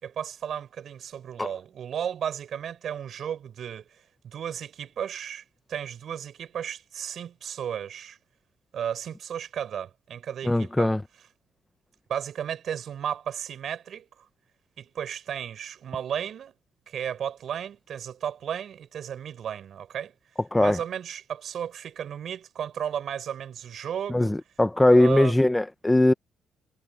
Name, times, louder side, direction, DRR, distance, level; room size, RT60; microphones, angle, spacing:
voice 1, 0.0-4.0 4.2-8.2 8.7-10.9 12.1-14.0 14.8-16.5 16.9-20.1 20.6-24.3 25.0-25.4, right 9 dB, 60° right, 6.4 m, -34 dB
voice 2, 10.4-11.0 20.5-20.8 24.1-26.1, left 1 dB, 10° left, 0.7 m, -20 dB
cardioid pair, 90°, 0 cm